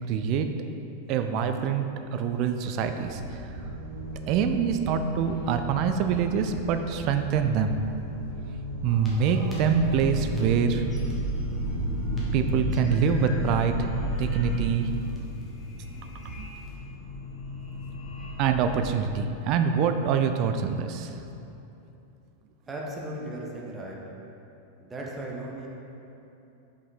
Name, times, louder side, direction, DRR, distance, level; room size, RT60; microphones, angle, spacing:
voice 1, 0.1-0.5 1.1-3.2 4.3-7.8 8.8-10.8 12.3-13.9 14.2-15.0 16.2-16.5 18.4-21.1, right 7 dB, 40° right, 7 dB, 0.4 m, -25 dB
sound 1, 2.9-13.1, right 1 dB, 60° right, 1.2 m, -38 dB
sound 2, 8.9-18.7, equal, 5° left, 1.5 m, -32 dB
voice 2, 22.7-24.0 24.8-25.7, right 1 dB, 15° right, -3 dB, 1.0 m, -36 dB
5.5 x 5.3 x 4.1 m, 2.9 s
figure-of-eight pair, 90°, 0 cm